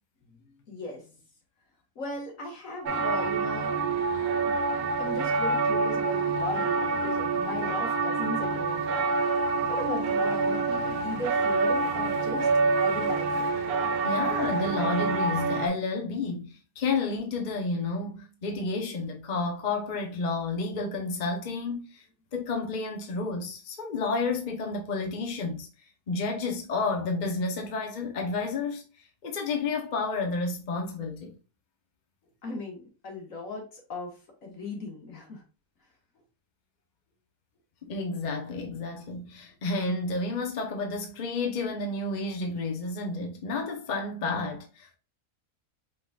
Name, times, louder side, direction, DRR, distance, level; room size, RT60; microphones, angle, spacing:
voice 1, 0.7-1.1 1.9-3.8 5.0-12.5 12.8-13.5 32.4-35.4, left 2 dB, 60° left, 1.8 m, -37 dB
sound 1, 2.9-15.7, right 3 dB, 80° right, 1.2 m, -27 dB
voice 2, 14.0-22.0 22.3-25.7 26.1-28.8 29.2-31.3 37.8-45.0, left 3 dB, 40° left, 0.8 m, -31 dB
5.2 x 3.9 x 2.3 m
omnidirectional pair, 1.5 m